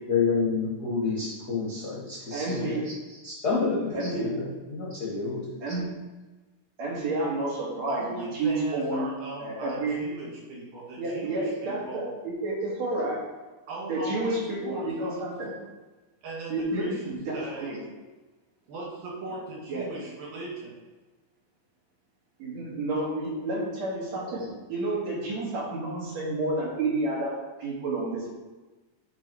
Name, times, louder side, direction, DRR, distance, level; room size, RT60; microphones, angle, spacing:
voice 1, 0.1-2.8 3.2-5.6, left 4 dB, 45° left, -6 dB, 1.2 m, -29 dB
voice 2, 2.3-3.2 3.9-4.4 5.6-5.9 6.8-9.1 9.4-10.0 11.0-13.2 13.9-15.5 16.5-17.8 19.7-19.9 22.4-28.3, right 2 dB, 50° right, -5 dB, 3.4 m, -30 dB
voice 3, 7.9-12.2 13.7-15.2 16.2-17.0 17.3-17.8 18.7-20.8, right 2 dB, 75° right, -5 dB, 4.2 m, -39 dB
10.5 x 4.7 x 4.7 m, 1.2 s
omnidirectional pair, 4.1 m